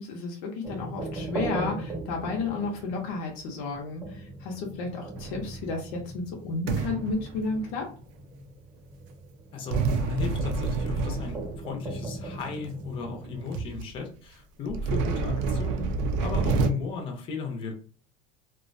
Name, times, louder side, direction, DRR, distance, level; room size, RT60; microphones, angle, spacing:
voice 1, 0.0-7.9, left 3 dB, 75° left, 1 dB, 0.6 m, -32 dB
sound 1, 0.6-13.6, right 2 dB, 20° right, 0.8 m, -39 dB
sound 2, 5.1-5.8 6.7-7.9 9.7-11.8 12.6-12.7 13.2-13.3 13.5-13.9 14.7-16.7, right 4 dB, 70° right, 0.4 m, -28 dB
voice 2, 9.5-17.7, left 5 dB, 30° left, 2 dB, 0.5 m, -36 dB
2.3 x 2.1 x 2.5 m, 0.42 s
cardioid pair, 155°, 17 cm